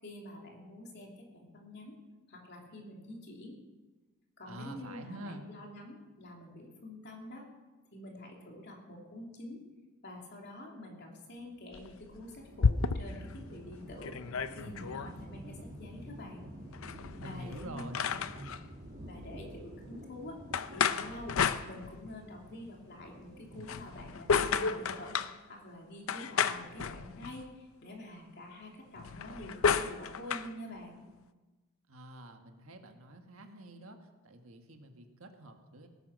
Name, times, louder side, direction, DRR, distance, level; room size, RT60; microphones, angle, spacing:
voice 1, 0.0-2.0 2.3-3.6 4.4-7.4 7.9-9.6 10.0-16.5 16.8-18.2 19.0-20.4 20.7-21.4 21.6-31.0, left 1 dB, 50° left, 0 dB, 3.0 m, -47 dB
voice 2, 4.4-5.5 17.2-18.1 31.9-35.9, right 1 dB, 70° right, 5 dB, 1.6 m, -47 dB
Thunder, 11.4-23.7, equal, 40° right, 1.9 m, -54 dB
sound 1, 11.7-13.3 13.7-13.8 14.0-15.1 16.7-18.6 20.5-22.2 23.5-25.4 26.1-27.5 29.0-30.5, left 6 dB, 65° left, 0.5 m, -32 dB
sound 2, 12.9-25.0, equal, 20° right, 3.1 m, -51 dB
17.5 x 10.0 x 6.3 m, 1.2 s
head